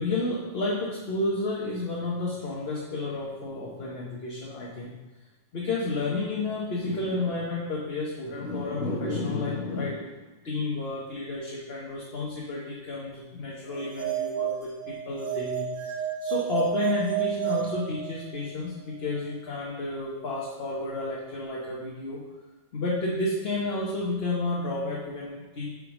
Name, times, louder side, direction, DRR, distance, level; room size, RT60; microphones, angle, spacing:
voice 1, 0.0-4.9 5.5-10.1 10.4-22.2 22.7-25.7, left 2 dB, 55° left, -4 dB, 1.3 m, -31 dB
sound 1, 13.7-18.5, right 11 dB, 40° right, 1.5 m, -31 dB
8.2 x 3.9 x 4.9 m, 1.2 s
omnidirectional pair, 1.2 m